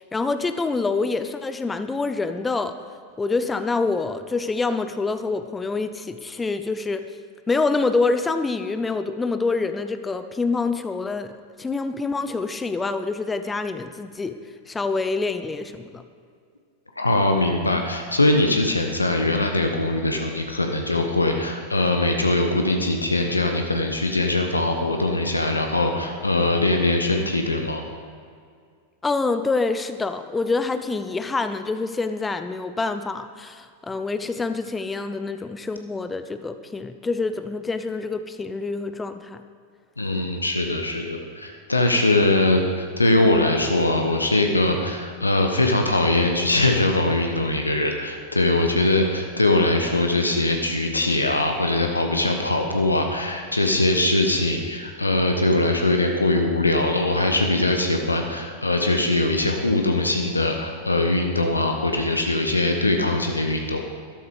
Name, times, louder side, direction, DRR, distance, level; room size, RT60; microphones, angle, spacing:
voice 1, 0.0-2.8 3.2-7.0 7.5-11.3 11.6-14.4 14.7-16.0 29.0-39.4, left 3 dB, 10° left, 10 dB, 0.6 m, -26 dB
voice 2, 17.0-27.8 40.0-63.9, left 2 dB, 80° left, 4 dB, 1.0 m, -21 dB
13.5 x 12.0 x 5.0 m, 2.1 s
figure-of-eight pair, 90°, 0 cm